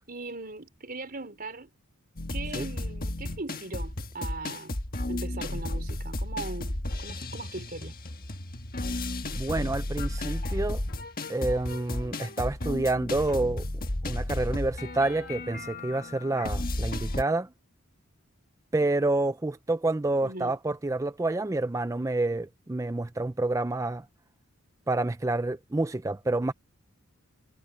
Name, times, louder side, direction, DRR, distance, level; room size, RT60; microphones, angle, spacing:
voice 1, 0.1-1.7 2.3-4.8 5.1-8.0 20.2-20.6, right 3 dB, 40° right, 4.5 m, -39 dB
sound 1, 2.2-17.2, left 1 dB, 40° left, 1.5 m, -33 dB
voice 2, 9.3-10.8 11.3-13.7 14.0-17.5 18.7-24.0 24.9-26.5, right 2 dB, 15° right, 0.4 m, -28 dB
head